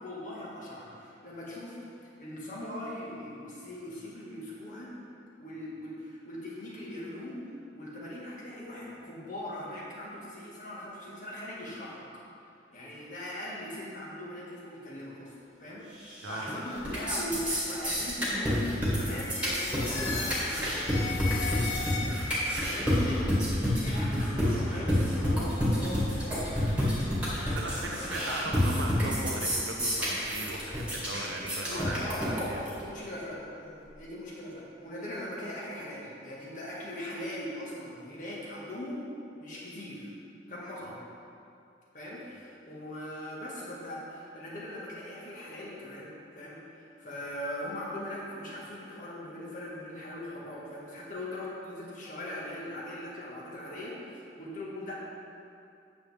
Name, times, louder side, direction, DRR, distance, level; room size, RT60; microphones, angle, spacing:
voice 1, 0.0-1.8 2.2-4.9 5.4-7.4 7.8-12.1 12.7-22.2 22.6-28.4 31.6-39.1 39.4-40.1 40.5-41.0 41.9-54.9, left 1 dB, 45° left, -5 dB, 1.7 m, -40 dB
sound 1, 16.0-16.5 16.8-32.8, equal, 5° right, 2.0 m, -29 dB
sound 2, 19.1-22.5, left 4 dB, 75° left, 1.3 m, -36 dB
voice 2, 27.5-32.0 32.3-32.6, right 2 dB, 85° right, 1 dB, 0.8 m, -38 dB
8.8 x 7.4 x 3.5 m, 2.6 s
head